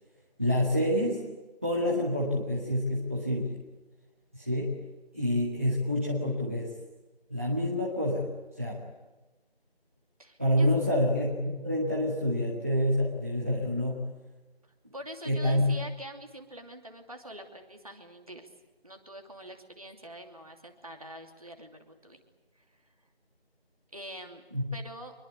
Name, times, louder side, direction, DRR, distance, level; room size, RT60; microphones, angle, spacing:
voice 1, 0.4-1.2 1.6-3.6 4.3-4.7 5.1-6.7 7.3-8.3 8.6-8.8 10.4-14.0 15.3-15.8 24.5-24.6, left 1 dB, 15° right, -6 dB, 1.9 m, -27 dB
voice 2, 10.2-10.7 14.9-18.5 18.8-22.2 23.9-24.4 24.7-25.1, right 1 dB, 35° right, 4 dB, 2.9 m, -44 dB
25.5 x 22.5 x 8.4 m, 1.1 s
figure-of-eight pair, 170°, 31 cm